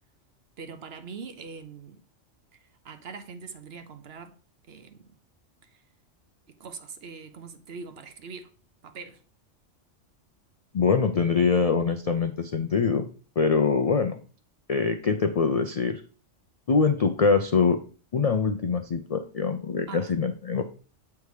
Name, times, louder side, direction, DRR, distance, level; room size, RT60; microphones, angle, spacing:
voice 1, 0.6-2.0 2.5-4.3 4.7-5.1 6.6-8.5 8.8-9.2 19.9-20.1, right 5 dB, 60° right, 0.9 m, -42 dB
voice 2, 10.7-13.0 13.4-14.2 14.7-16.0 16.7-17.8 18.1-20.6, left 5 dB, 70° left, 0.3 m, -24 dB
7.9 x 3.5 x 4.7 m
omnidirectional pair, 1.3 m